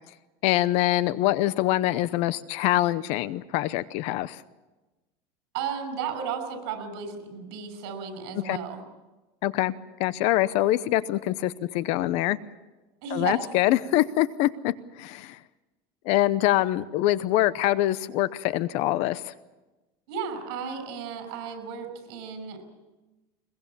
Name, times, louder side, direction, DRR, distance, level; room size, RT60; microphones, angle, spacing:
voice 1, 0.4-4.4 8.4-8.6 9.4-9.7 10.0-12.4 13.1-15.4 16.0-19.3, left 15 dB, 55° left, 16 dB, 0.7 m, -24 dB
voice 2, 5.5-8.8 13.0-13.4 20.1-22.9, right 6 dB, 65° right, 9 dB, 5.9 m, -34 dB
22.0 x 22.0 x 7.3 m, 1.1 s
supercardioid pair, 150°, 13 cm